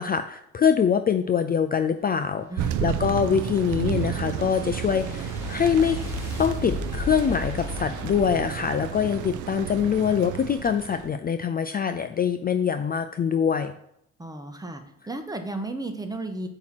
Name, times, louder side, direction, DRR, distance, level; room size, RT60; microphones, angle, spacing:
voice 1, 0.0-6.0 6.4-13.7, left 7 dB, 30° left, 9 dB, 0.4 m, -24 dB
sound 1, 2.4-9.7, left 3 dB, 10° left, 3.1 m, -37 dB
Thunder, 2.6-11.1, right 9 dB, 80° right, 0.5 m, -32 dB
voice 2, 14.2-16.5, right 2 dB, 10° right, 7 dB, 0.9 m, -34 dB
8.5 x 3.0 x 5.9 m, 0.76 s
cardioid pair, 90°, 30 cm